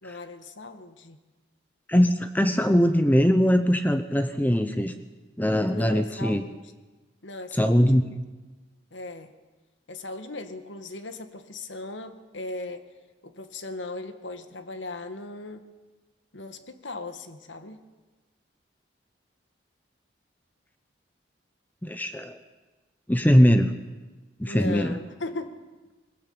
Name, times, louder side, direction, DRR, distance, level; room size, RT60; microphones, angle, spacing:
voice 1, 0.0-1.2 5.6-6.6 7.2-8.1 8.9-9.3 9.9-12.9 13.2-15.6 16.3-17.8 24.4-25.5, left 2 dB, 85° left, 9 dB, 2.0 m, -38 dB
voice 2, 1.9-4.9 5.4-6.4 7.5-8.0 21.8-22.4 23.1-23.7 24.4-25.0, equal, 10° left, 8 dB, 0.9 m, -21 dB
21.5 x 20.5 x 8.9 m, 1.2 s
head